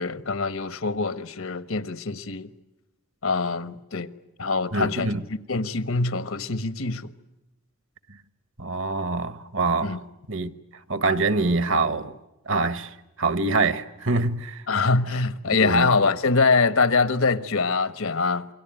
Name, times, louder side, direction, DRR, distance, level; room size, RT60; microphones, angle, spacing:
voice 1, 0.0-2.5 3.2-4.1 4.4-5.1 5.5-7.1 9.8-10.0 14.7-18.5, left 4 dB, 70° left, 1.3 m, -24 dB
voice 2, 4.7-5.2 8.6-10.0 10.3-10.5 10.9-12.1 12.5-14.6 15.6-15.9, right 3 dB, 60° right, 1.3 m, -25 dB
28.0 x 23.5 x 9.0 m
head